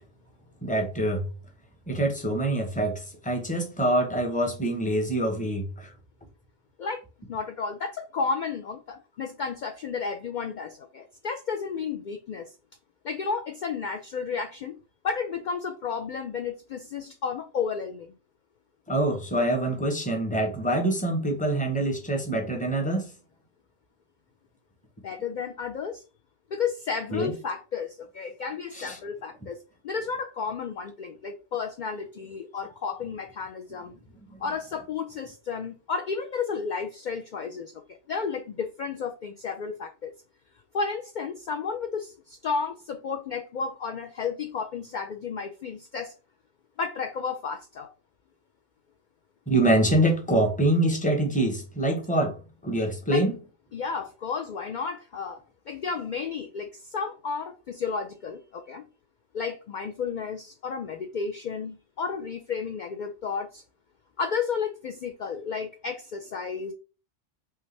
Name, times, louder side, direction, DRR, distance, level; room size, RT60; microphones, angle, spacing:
voice 1, 0.6-1.3 1.9-5.9 18.9-23.1 27.1-27.3 28.7-29.0 49.5-52.4 52.6-53.3, right 1 dB, 5° left, 0.8 m, -25 dB
voice 2, 7.3-12.5 13.0-14.8 15.0-18.1 25.0-26.0 26.5-29.6 29.8-34.0 34.4-40.1 40.7-46.1 46.8-47.9 53.1-53.3 53.7-55.4 55.7-58.8 59.3-63.6 64.2-66.7, left 5 dB, 65° left, 0.4 m, -32 dB
5.7 x 2.5 x 3.2 m
omnidirectional pair, 1.3 m